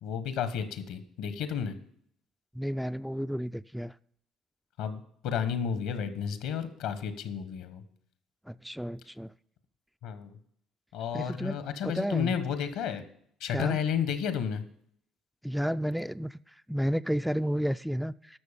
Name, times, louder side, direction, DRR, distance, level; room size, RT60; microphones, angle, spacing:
voice 1, 0.0-1.7 4.8-7.8 10.0-10.4 10.9-13.0 13.4-14.6, left 7 dB, 75° left, 11 dB, 1.2 m, -32 dB
voice 2, 2.6-3.9 8.5-9.3 11.1-11.6 11.8-12.3 13.5-13.8 15.4-16.4 16.7-18.1, equal, ahead, 12 dB, 0.3 m, -31 dB
12.0 x 6.5 x 5.1 m, 0.67 s
hypercardioid pair, 55°, 0 cm